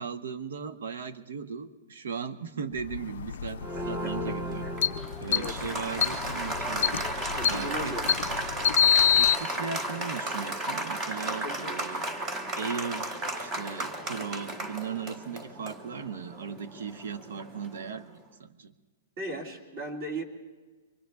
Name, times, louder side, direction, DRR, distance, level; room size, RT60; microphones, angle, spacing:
voice 1, 0.0-4.7 5.2-7.0 7.4-8.2 9.2-12.1 12.6-18.7, right 6 dB, 80° right, 9 dB, 1.0 m, -37 dB
sound 1, 2.8-9.4, left 9 dB, 65° left, 0.4 m, -27 dB
Applause, 3.6-18.0, right 1 dB, 15° right, 1.0 m, -34 dB
voice 2, 3.7-4.7 5.3-5.6 7.4-8.1 11.4-11.8 19.2-20.2, right 1 dB, 40° right, -3 dB, 2.4 m, -38 dB
25.0 x 23.0 x 2.3 m, 1.4 s
hypercardioid pair, 165°, 0 cm